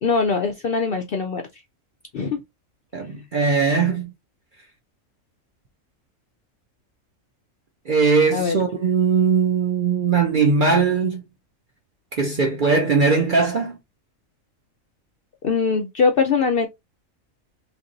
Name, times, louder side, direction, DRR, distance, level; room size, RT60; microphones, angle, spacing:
voice 1, 0.0-1.4 2.1-2.4 8.3-8.6 15.4-16.7, left 5 dB, 60° left, 0.6 m, -21 dB
voice 2, 2.9-4.1 7.9-11.2 12.1-13.8, right 5 dB, 50° right, 0.6 m, -20 dB
3.0 x 2.6 x 3.8 m
omnidirectional pair, 1.4 m